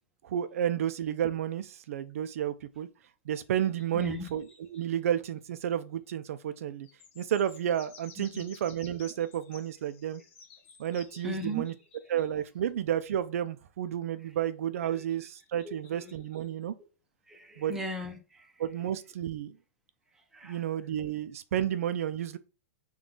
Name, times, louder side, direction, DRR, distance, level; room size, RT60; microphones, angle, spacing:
voice 1, 0.2-2.9 3.3-6.9 7.2-10.2 10.8-11.7 12.1-16.7 17.6-17.7 18.6-19.6 20.4-22.4, right 10 dB, 70° right, 0.4 m, -31 dB
sound 1, 3.5-4.9 6.8-12.4 15.1-16.5, left 6 dB, 50° left, 0.9 m, -55 dB
voice 2, 3.9-4.2 8.2-8.4 11.1-11.7 14.2-14.3 14.8-15.0 15.6-16.2 16.8-16.9 17.3-18.9 20.1-20.7, right 1 dB, 5° right, 0.6 m, -39 dB
3.6 x 2.3 x 3.7 m
hypercardioid pair, 155°, 8 cm